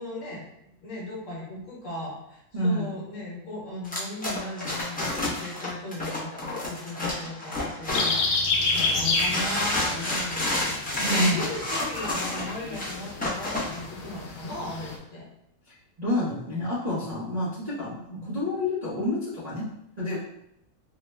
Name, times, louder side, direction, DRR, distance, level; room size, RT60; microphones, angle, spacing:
voice 1, 0.0-15.3 18.1-18.3, left 2 dB, 55° left, -5 dB, 1.3 m, -37 dB
voice 2, 2.5-2.9 11.0-11.5 15.7-18.0 18.3-19.7 20.0-20.2, left 1 dB, 40° right, -10 dB, 0.6 m, -28 dB
sound 1, 3.8-8.4 8.7-13.8, left 1 dB, 10° left, 0.4 m, -30 dB
sound 2, 7.9-15.0, left 3 dB, 75° left, 1.1 m, -30 dB
3.7 x 2.2 x 3.2 m, 0.78 s
omnidirectional pair, 1.6 m